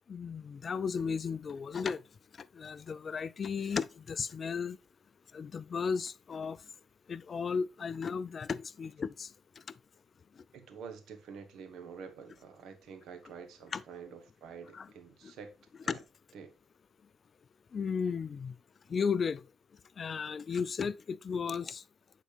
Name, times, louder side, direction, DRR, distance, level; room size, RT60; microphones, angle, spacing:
voice 1, 0.1-2.0 2.6-4.8 5.3-6.6 7.1-9.3 13.7-13.8 14.7-14.9 15.9-16.0 17.7-18.5 18.9-19.4 20.0-21.8, left 6 dB, 45° left, 0.3 m, -34 dB
voice 2, 10.5-15.5 15.8-16.0 16.3-16.5, right 6 dB, 75° right, 1.1 m, -48 dB
8.3 x 4.1 x 3.3 m
cardioid pair, 90°, 0 cm